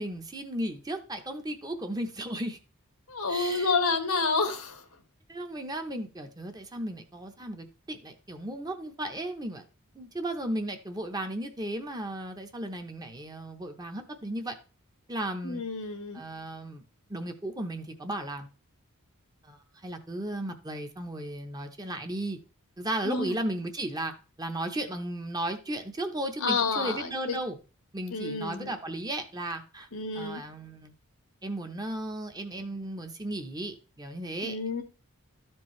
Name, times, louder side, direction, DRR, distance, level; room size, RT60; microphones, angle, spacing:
voice 1, 0.0-2.6 3.3-3.7 5.3-9.6 9.9-14.6 15.1-15.6 16.1-16.8 17.1-18.5 19.4-22.4 22.8-27.6 27.9-29.9 30.1-30.9 31.4-34.6, right 1 dB, 15° right, 0.8 m, -35 dB
voice 2, 3.1-4.8 15.4-16.2 23.0-23.3 26.4-27.4 28.1-28.7 29.9-30.4 34.4-34.8, left 4 dB, 90° left, 1.4 m, -29 dB
12.5 x 4.5 x 3.1 m
head